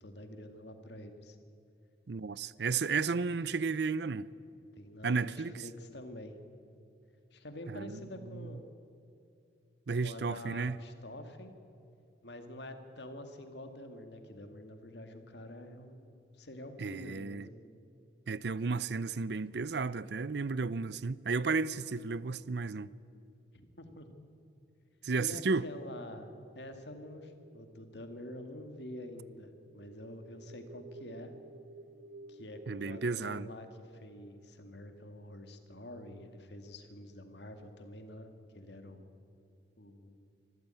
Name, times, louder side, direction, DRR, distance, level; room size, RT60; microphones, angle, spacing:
voice 1, 0.0-1.4 4.7-6.4 7.3-8.7 10.0-11.5 12.2-17.6 23.5-24.1 25.2-31.3 32.3-39.1 39.8-40.3, left 1 dB, 60° left, 2.1 m, -47 dB
voice 2, 2.1-4.3 5.0-5.6 7.7-8.0 8.4-8.5 9.9-10.8 16.8-17.5 18.3-22.9 25.0-25.7 32.7-33.5, right 4 dB, 60° right, 0.5 m, -33 dB
sound 1, 26.2-33.1, right 2 dB, 85° right, 1.6 m, -54 dB
25.0 x 14.0 x 9.1 m
head